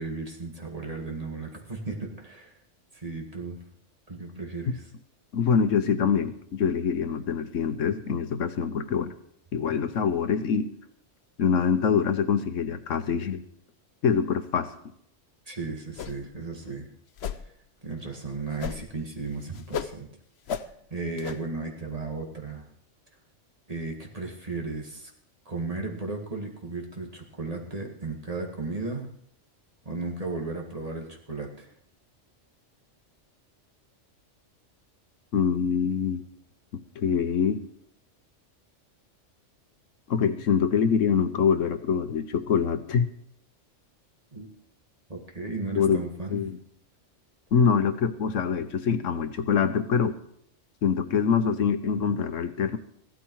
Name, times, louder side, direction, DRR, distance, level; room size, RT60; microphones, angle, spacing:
voice 1, 0.0-2.5 2.9-3.6 4.1-4.8 15.5-16.9 17.8-20.1 20.5-20.6 20.9-22.7 23.7-25.1 25.5-29.1 29.9-31.7 44.3-44.5 45.1-46.4, right 3 dB, 30° right, 1 dB, 2.1 m, -35 dB
voice 2, 5.3-9.1 9.5-10.7 11.4-13.4 14.0-14.7 35.3-36.2 36.7-37.6 40.1-43.1 45.8-46.0 46.3-46.6 47.5-50.2 50.8-52.8, left 6 dB, 90° left, 10 dB, 1.3 m, -24 dB
sound 1, 16.0-16.4 16.6-16.7 17.2-17.5 18.6-19.0 19.3-20.0 20.5-20.7 21.2-21.4, left 8 dB, 60° left, 1.0 m, -34 dB
15.5 x 12.5 x 4.7 m, 0.70 s
omnidirectional pair, 1.3 m